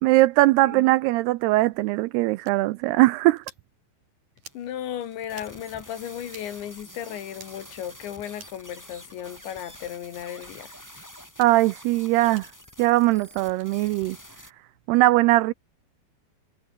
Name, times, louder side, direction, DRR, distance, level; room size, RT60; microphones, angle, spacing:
voice 1, 0.0-3.4 11.4-12.5 12.8-14.2 14.9-15.5, right 19 dB, 80° right, 2.4 m, -20 dB
sound 1, 2.4-2.6 3.4-3.7 4.4-4.6 5.3-5.5 6.3-6.5 7.3-7.5 8.3-8.6 9.4-9.6 10.4-10.5 11.3-11.5 12.3-12.5 13.5-13.7, right 7 dB, 50° right, 4.7 m, -47 dB
sound 2, 4.4-14.5, equal, 5° left, 7.7 m, -47 dB
voice 2, 4.5-10.7, left 10 dB, 90° left, 4.7 m, -35 dB
omnidirectional pair, 5.0 m